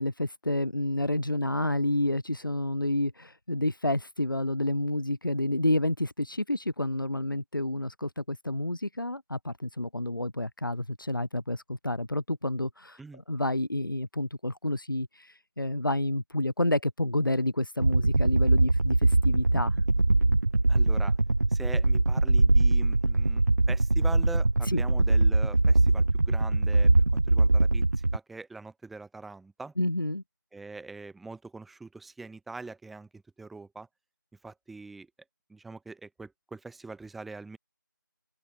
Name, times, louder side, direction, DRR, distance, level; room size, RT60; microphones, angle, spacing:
voice 1, 0.0-19.8 24.7-24.8 29.8-30.2, left 1 dB, 85° left, 5.6 m, -29 dB
sound 1, 17.8-28.2, right 2 dB, 55° right, 2.6 m, -22 dB
voice 2, 20.7-21.2 21.5-29.7 30.5-33.9 34.4-35.1 35.5-37.6, right 3 dB, ahead, 3.3 m, -43 dB
figure-of-eight pair, 175°, 11 cm